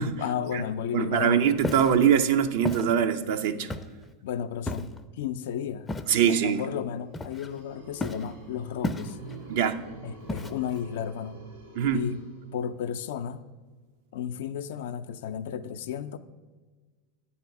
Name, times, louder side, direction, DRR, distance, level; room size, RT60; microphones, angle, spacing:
voice 1, 0.2-1.6 4.2-5.9 6.3-9.2 10.0-11.4 11.9-12.2 12.5-13.4 14.1-16.2, left 8 dB, 70° left, 10 dB, 0.4 m, -33 dB
voice 2, 0.9-3.7 6.1-6.6 9.5-9.8 11.8-12.1, right 8 dB, 65° right, 9 dB, 0.6 m, -23 dB
Walk footsteps, 1.6-2.0 2.6-2.9 3.7-4.0 4.7-5.0 5.9-6.2 7.1-7.6 8.0-8.3 8.8-9.4 10.3-10.8, left 2 dB, 15° left, 0.5 m, -33 dB
sound 1, 7.1-13.0, right 3 dB, 80° right, 2.4 m, -47 dB
9.1 x 4.2 x 5.9 m, 1.3 s
hypercardioid pair, 95°, 0 cm